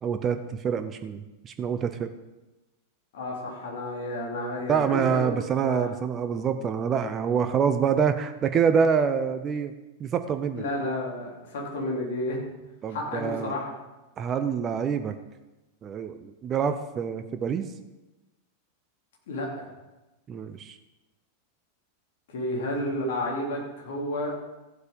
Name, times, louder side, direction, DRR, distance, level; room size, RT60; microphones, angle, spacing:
voice 1, 0.0-2.1 4.7-9.7 10.0-10.6 12.8-13.6 14.2-15.1 15.8-17.7 20.3-20.8, right 7 dB, 25° right, 9 dB, 0.7 m, -26 dB
voice 2, 3.1-5.3 5.6-5.9 10.6-12.4 12.9-13.7 19.3-19.7 22.3-24.3, left 1 dB, 55° left, -1 dB, 3.4 m, -31 dB
14.5 x 8.0 x 5.3 m, 1.1 s
figure-of-eight pair, 90°, 0 cm